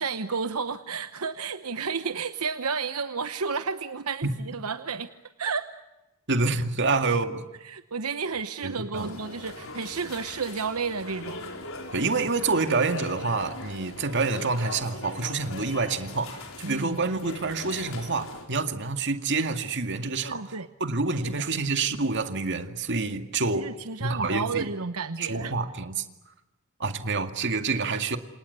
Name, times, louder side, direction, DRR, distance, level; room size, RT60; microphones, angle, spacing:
voice 1, 0.0-5.1 5.4-5.7 7.6-11.5 16.6-17.0 20.2-20.7 21.2-21.5 23.5-25.5, right 5 dB, 80° right, 1.0 m, -32 dB
voice 2, 6.3-7.4 8.6-9.2 11.9-20.5 20.8-23.7 24.0-24.7 25.2-26.1 26.8-28.2, right 3 dB, 55° right, 2.2 m, -27 dB
sound 1, 8.9-18.5, left 3 dB, 65° left, 5.1 m, -40 dB
28.5 x 27.5 x 6.9 m
head